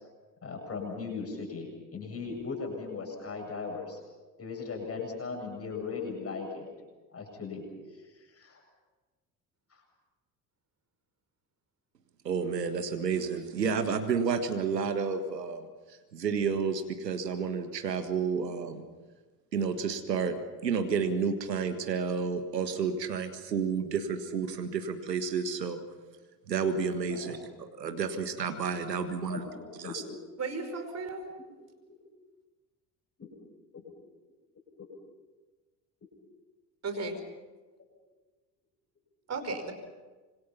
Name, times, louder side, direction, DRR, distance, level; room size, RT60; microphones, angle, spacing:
voice 1, 0.4-4.0 4.4-6.7 7.1-7.6 7.9-8.6 9.7-9.8 27.1-27.3 29.3-30.2 31.4-31.5 31.9-32.0 33.2-33.3 34.8-34.9, left 4 dB, 30° left, 1 dB, 7.7 m, -38 dB
voice 2, 12.2-15.6 15.9-18.8 19.5-20.3 20.6-25.8 26.5-29.5 29.8-30.0, right 6 dB, 80° right, 8 dB, 1.7 m, -31 dB
voice 3, 30.4-31.2 36.8-37.2 39.3-39.7, right 3 dB, 30° right, 7 dB, 5.1 m, -34 dB
26.5 x 25.0 x 5.9 m, 1.3 s
figure-of-eight pair, 60°, 49 cm